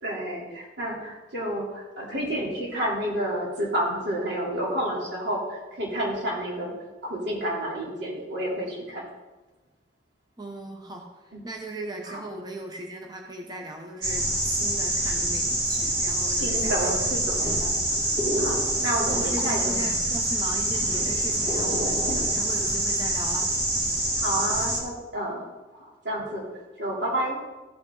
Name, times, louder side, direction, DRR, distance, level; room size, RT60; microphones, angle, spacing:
voice 1, 0.0-6.7 7.0-9.0 11.3-11.4 12.1-12.2 16.2-17.8 18.4-19.7 22.1-22.2 24.1-25.5 26.0-26.5 26.8-27.4, right 1 dB, 80° right, -4 dB, 3.0 m, -30 dB
voice 2, 10.4-17.1 17.4-17.5 17.9-18.1 18.7-23.5, right 1 dB, 25° right, 2 dB, 0.7 m, -38 dB
sound 1, 14.0-24.8, right 1 dB, 60° right, 2.4 m, -26 dB
14.0 x 5.3 x 3.8 m, 1.2 s
head